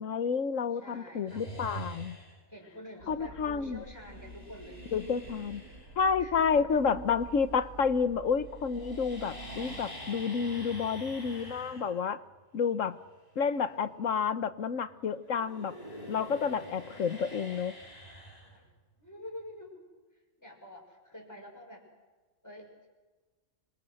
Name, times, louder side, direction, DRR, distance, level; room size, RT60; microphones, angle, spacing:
voice 1, 0.0-2.2 3.1-3.8 4.9-5.6 6.0-12.2 12.5-13.0 13.4-15.7 16.1-17.7, left 6 dB, 70° left, 12 dB, 1.4 m, -30 dB
voice 2, 0.7-1.5 2.5-4.9 6.2-6.8 18.5-18.7 19.0-19.9 20.1-21.9 22.4-22.9, left 1 dB, 10° left, 1 dB, 6.5 m, -48 dB
sound 1, 1.3-2.6 3.8-8.0 8.3-14.9 15.2-19.0, right 1 dB, 30° left, 3.7 m, -46 dB
sound 2, 3.0-9.8, right 3 dB, 85° right, 3.2 m, -49 dB
29.0 x 25.5 x 6.5 m, 1.3 s
omnidirectional pair, 1.4 m